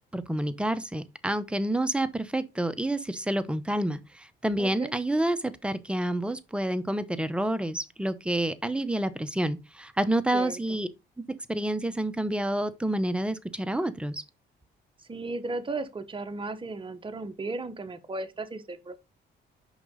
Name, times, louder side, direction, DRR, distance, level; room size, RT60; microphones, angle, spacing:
voice 1, 0.1-10.9 11.5-14.2, right 1 dB, 5° right, 0.9 m, -28 dB
voice 2, 4.6-4.9 10.3-10.8 15.1-19.0, right 2 dB, 25° right, 1.2 m, -35 dB
6.1 x 5.3 x 3.7 m
cardioid pair, 90°, 20 cm